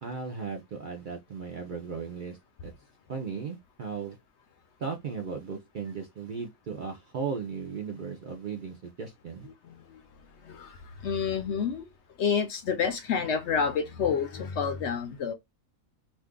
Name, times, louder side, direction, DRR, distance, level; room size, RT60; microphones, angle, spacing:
voice 1, 0.0-2.7 3.1-4.2 4.8-9.5, right 5 dB, 55° right, 0.6 m, -36 dB
voice 2, 10.4-11.9 12.2-15.3, left 6 dB, 65° left, 0.8 m, -29 dB
2.6 x 2.4 x 3.5 m
omnidirectional pair, 1.4 m